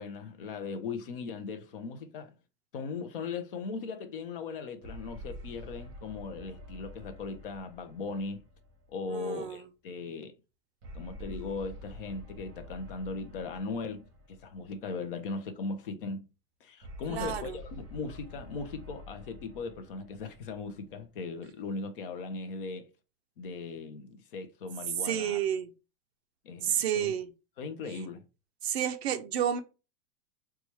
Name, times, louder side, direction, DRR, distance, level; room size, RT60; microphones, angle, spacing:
voice 1, 0.0-2.3 2.7-8.4 8.9-10.4 10.9-16.3 16.6-22.9 23.4-25.4 26.4-27.1 27.6-28.2, left 4 dB, 35° left, 0.5 m, -38 dB
sound 1, 4.8-9.4 10.8-15.2 16.8-21.4, equal, 25° right, 1.2 m, -48 dB
voice 2, 9.1-9.6 17.1-17.6 25.0-25.7 26.6-27.3 28.6-29.6, right 10 dB, 45° right, 0.5 m, -30 dB
4.1 x 2.3 x 3.0 m
supercardioid pair, 160°, 47 cm